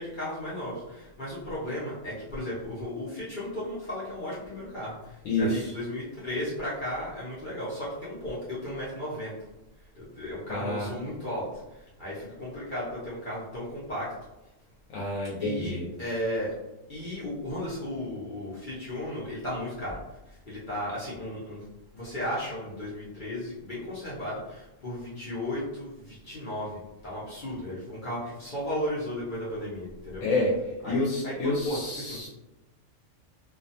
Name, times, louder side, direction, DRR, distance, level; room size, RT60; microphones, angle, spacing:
voice 1, 0.0-9.3 10.0-11.6 12.0-14.1 15.4-16.6 16.9-20.0 20.5-21.6 21.9-30.2 30.8-32.2, left 1 dB, 50° left, -8 dB, 0.7 m, -35 dB
voice 2, 5.2-5.7 10.5-10.9 14.9-15.9 30.2-30.6 30.8-32.3, left 2 dB, 85° left, -4 dB, 1.0 m, -28 dB
2.3 x 2.3 x 2.6 m, 0.97 s
omnidirectional pair, 1.3 m